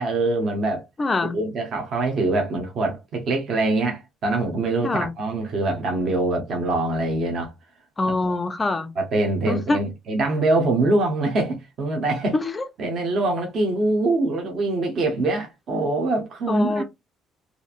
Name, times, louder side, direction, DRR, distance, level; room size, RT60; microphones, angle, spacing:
voice 1, 0.0-0.8 1.3-7.5 8.2-8.3 9.0-12.3 12.8-16.8, right 2 dB, 40° right, 0.7 m, -24 dB
voice 2, 1.0-1.4 4.8-5.1 8.0-8.9 9.5-9.8 12.3-12.7 16.5-16.8, left 2 dB, 15° left, 0.3 m, -24 dB
3.0 x 2.5 x 2.4 m
cardioid pair, 175°, 0 cm